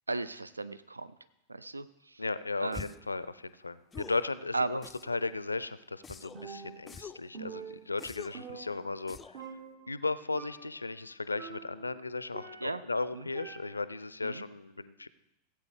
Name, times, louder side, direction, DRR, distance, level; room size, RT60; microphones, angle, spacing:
voice 1, 0.1-1.2 1.5-2.2 2.6-2.9 4.5-4.8 12.6-12.8 13.1-13.3 14.2-14.4, right 3 dB, 80° right, 15 dB, 0.3 m, -35 dB
voice 2, 2.2-9.5 9.9-15.1, left 3 dB, 80° left, 16 dB, 0.4 m, -36 dB
sound 1, 2.7-3.1 3.9-4.3 4.8-5.3 6.0-6.5 6.9-7.3 8.0-8.5 9.1-9.5, left 6 dB, 15° left, 0.3 m, -46 dB
Percussion, 6.3-7.0 7.3-9.1 9.3-10.0 10.3-10.9 11.3-12.9 13.3-14.0, right 6 dB, 40° right, 1.2 m, -46 dB
16.0 x 8.5 x 3.4 m, 0.90 s
figure-of-eight pair, 90°, 0 cm